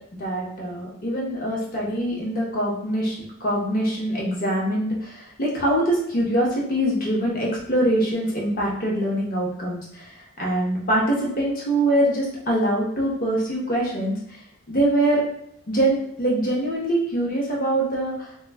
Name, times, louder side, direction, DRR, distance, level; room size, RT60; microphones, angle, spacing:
voice 1, 0.2-14.4 14.7-15.2 15.7-18.3, right 1 dB, 40° left, -3 dB, 0.7 m, -24 dB
2.2 x 2.0 x 3.3 m, 0.74 s
head